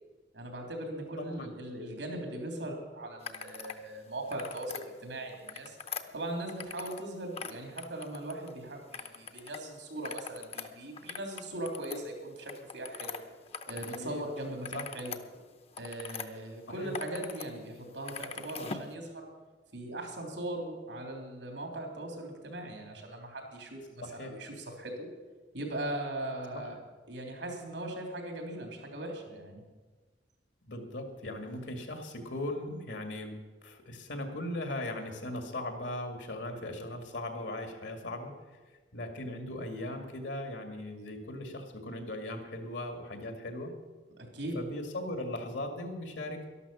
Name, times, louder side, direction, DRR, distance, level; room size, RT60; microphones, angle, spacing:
voice 1, 0.3-5.8 6.1-13.2 13.6-15.2 15.8-19.3 19.7-25.1 25.5-26.8 27.1-29.6 44.2-44.6, right 1 dB, 90° right, 2 dB, 3.4 m, -39 dB
voice 2, 1.2-1.5 14.0-14.2 14.7-14.9 16.7-16.9 24.0-24.4 26.5-26.6 30.7-33.4 33.6-38.3 38.9-43.7 44.5-46.5, left 1 dB, 75° left, 5 dB, 2.2 m, -38 dB
sound 1, 3.2-3.8 4.2-4.8 5.3-7.1 7.3-8.5 8.9-9.6 9.9-14.0 14.4-16.3 16.7-17.5 17.7-18.9, left 6 dB, 35° left, 0.7 m, -42 dB
12.5 x 12.0 x 7.0 m, 1.3 s
head